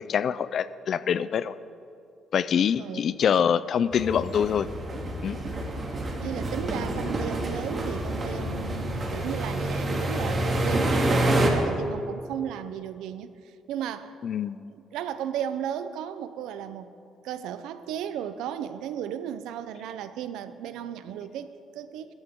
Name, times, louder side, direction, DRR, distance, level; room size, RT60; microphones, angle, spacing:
voice 1, 0.1-1.6 2.3-4.7 5.2-5.4 14.2-14.6, left 8 dB, 55° left, 16 dB, 0.5 m, -25 dB
voice 2, 2.8-3.2 6.2-14.1 14.7-16.9 17.2-22.1, right 9 dB, 90° right, 12 dB, 0.7 m, -35 dB
sound 1, 3.9-11.5, right 1 dB, 35° right, 2.3 m, -28 dB
23.5 x 13.5 x 3.8 m, 2.6 s
cardioid pair, 110°, 0 cm